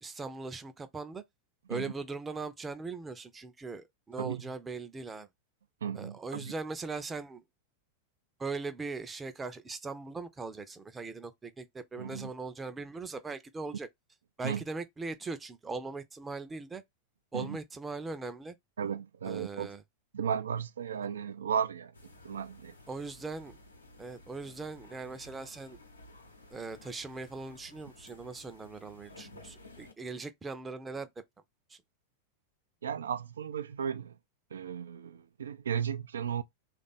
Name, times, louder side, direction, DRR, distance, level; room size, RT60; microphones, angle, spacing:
voice 1, 0.0-1.2 1.7-5.3 5.9-7.4 8.4-13.9 14.4-16.8 17.3-18.6 19.2-19.8 22.9-23.6 24.0-25.8 26.5-31.1 31.7-31.8, right 3 dB, 15° right, 0.6 m, -40 dB
voice 2, 5.8-6.5 12.0-12.3 14.4-14.6 17.3-17.6 18.8-19.7 20.1-21.9 22.2-22.7 32.8-34.2 34.5-36.4, right 7 dB, 65° right, 0.4 m, -35 dB
sound 1, 21.9-29.9, left 2 dB, 80° left, 0.9 m, -54 dB
3.3 x 2.5 x 4.0 m
figure-of-eight pair, 90°, 0 cm